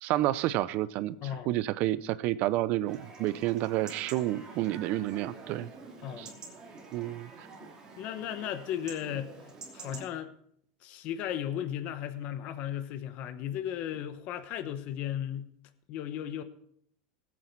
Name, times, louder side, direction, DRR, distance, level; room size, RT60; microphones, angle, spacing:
voice 1, 0.0-5.7 6.2-6.3 6.9-7.3, right 15 dB, 45° right, 17 dB, 0.6 m, -30 dB
voice 2, 1.2-1.5 6.0-6.3 8.0-9.3 9.7-10.3 10.8-15.5 15.9-16.4, left 10 dB, 40° left, 10 dB, 1.0 m, -35 dB
Chatter / Livestock farm animals working animals / Chirp tweet, 2.9-10.1, right 4 dB, 20° right, 2.9 m, -47 dB
18.5 x 8.6 x 4.6 m, 0.67 s
supercardioid pair, 150°, 4 cm